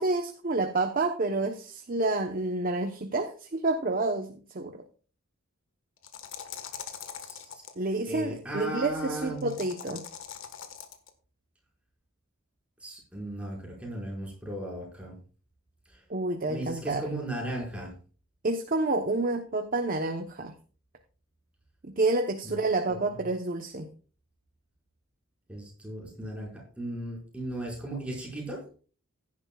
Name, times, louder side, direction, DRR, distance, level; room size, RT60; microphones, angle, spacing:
voice 1, 0.0-4.8 7.8-10.1 16.1-17.0 18.4-20.5 21.8-23.9, right 2 dB, 40° right, 5 dB, 0.9 m, -29 dB
sound 1, 6.0-7.7 9.4-11.1, left 8 dB, 70° left, 1.5 m, -42 dB
voice 2, 7.2-7.6 8.1-9.5 12.8-15.2 15.9-16.0 16.5-17.9 22.4-22.6 22.9-23.2 25.5-26.5 26.8-28.8, right 1 dB, 5° right, -3 dB, 5.3 m, -36 dB
16.0 x 10.5 x 2.4 m, 0.38 s
head